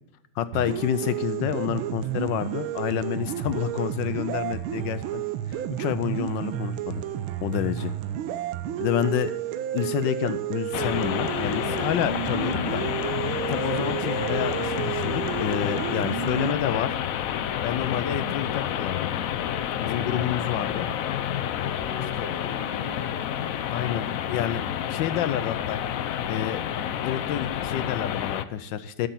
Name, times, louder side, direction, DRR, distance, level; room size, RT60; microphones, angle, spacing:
voice 1, 0.4-5.2 5.7-7.0 7.4-7.9 8.8-9.3 9.7-12.8 13.5-17.0 17.6-19.1 19.8-20.9 22.2-22.3 23.7-25.8 26.3-26.6 27.0-29.1, left 10 dB, 75° left, 12 dB, 1.2 m, -29 dB
sound 1, 0.5-16.5, right 12 dB, 90° right, 1.5 m, -31 dB
sound 2, 10.7-28.4, left 10 dB, 90° left, 0.7 m, -29 dB
voice 2, 13.6-14.2 19.9-20.4 21.7-23.1, right 1 dB, 60° right, -5 dB, 3.5 m, -44 dB
13.0 x 6.8 x 7.4 m, 0.94 s
omnidirectional pair, 2.2 m